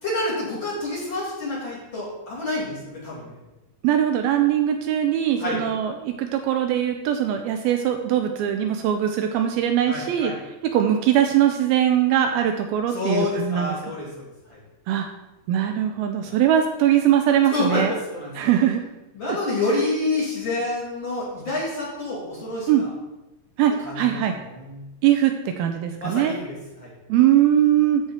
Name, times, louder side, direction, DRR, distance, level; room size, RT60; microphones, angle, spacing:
voice 1, 0.0-3.4 5.4-5.6 9.9-10.3 12.9-14.1 14.5-14.6 16.2-16.4 17.5-18.3 19.1-22.9 23.8-24.2 24.5-24.8 26.0-26.9, left 2 dB, 30° left, -7 dB, 3.1 m, -28 dB
voice 2, 3.8-10.3 10.6-13.8 14.9-15.1 15.5-17.9 18.4-18.8 22.7-22.8 23.6-24.4 25.0-26.3 27.1-28.0, right 10 dB, 80° right, 5 dB, 2.3 m, -21 dB
13.5 x 4.8 x 4.3 m, 0.99 s
omnidirectional pair, 4.6 m